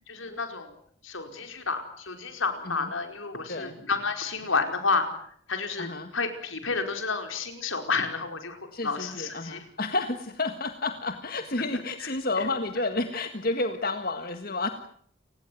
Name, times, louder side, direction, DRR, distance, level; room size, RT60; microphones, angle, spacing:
voice 1, 0.1-0.7 1.0-5.1 5.5-9.6 12.0-12.1 12.4-12.5, left 4 dB, 85° left, 6 dB, 5.0 m, -30 dB
voice 2, 5.8-6.1 8.7-14.7, left 2 dB, 45° left, 7 dB, 1.7 m, -30 dB
30.0 x 18.0 x 9.4 m, 0.64 s
head